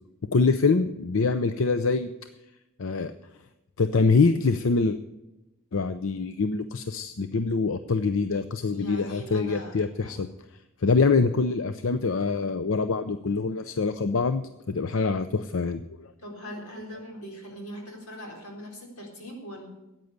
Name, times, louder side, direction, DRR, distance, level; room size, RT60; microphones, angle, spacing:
voice 1, 0.3-2.1 2.8-3.1 3.8-5.0 5.7-10.3 10.8-16.1, left 4 dB, 65° left, 10 dB, 0.6 m, -24 dB
voice 2, 8.7-9.7 10.0-10.1 16.2-19.7, equal, 90° left, 1 dB, 4.1 m, -40 dB
14.0 x 9.3 x 8.0 m, 0.98 s
head